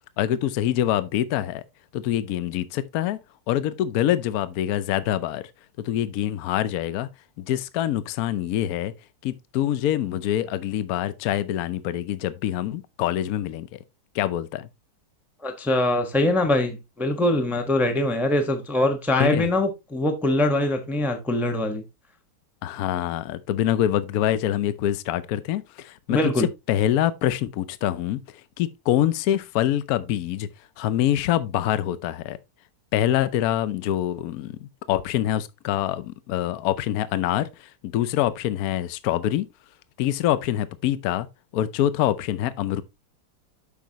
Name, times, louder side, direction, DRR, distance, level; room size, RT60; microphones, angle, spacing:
voice 1, 0.2-1.6 1.9-3.2 3.5-5.4 5.8-7.1 7.4-8.9 9.2-13.8 14.1-14.7 19.2-19.5 22.6-28.2 28.6-30.5 30.8-32.4 32.9-39.5 40.0-41.3 41.5-42.8, left 12 dB, 75° left, 0.8 m, -25 dB
voice 2, 15.4-21.8 26.1-26.5, left 1 dB, ahead, 0.7 m, -23 dB
8.4 x 6.1 x 2.9 m
omnidirectional pair, 2.4 m